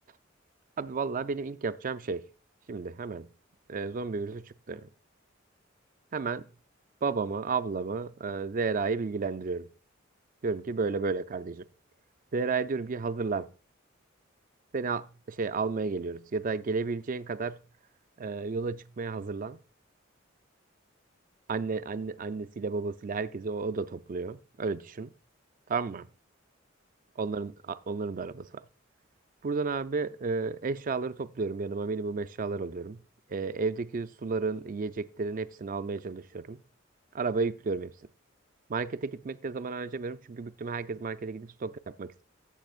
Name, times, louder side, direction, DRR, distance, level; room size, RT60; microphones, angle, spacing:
voice 1, 0.8-2.3 2.7-3.3 3.7-4.9 6.1-6.5 7.0-9.7 10.4-11.7 12.3-13.5 14.7-17.6 18.2-19.6 21.5-25.1 25.7-26.1 27.2-28.6 29.4-33.0 33.3-36.6 37.1-37.9 38.7-42.2, right 4 dB, 40° right, 0.4 m, -32 dB
15.0 x 7.1 x 2.4 m
head